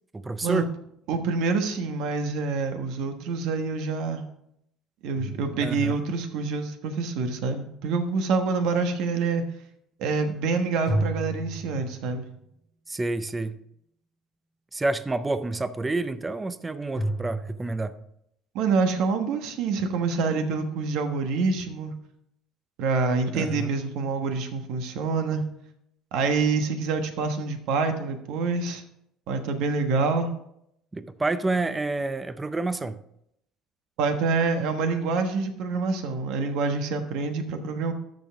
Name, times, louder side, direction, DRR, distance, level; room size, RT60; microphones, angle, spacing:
voice 1, 0.1-0.7 5.6-6.0 12.9-13.6 14.7-18.0 23.3-23.7 30.9-33.0, right 2 dB, 15° right, 14 dB, 0.5 m, -29 dB
voice 2, 1.1-4.2 5.0-9.4 10.0-12.2 18.5-21.9 22.8-25.4 26.1-28.8 29.3-30.3 34.0-37.9, right 4 dB, 70° right, 7 dB, 1.2 m, -26 dB
sound 1, 5.1-6.3 10.9-12.4 16.9-18.1, right 1 dB, 35° right, 2.6 m, -32 dB
13.5 x 5.3 x 3.5 m, 0.76 s
cardioid pair, 110°, 0 cm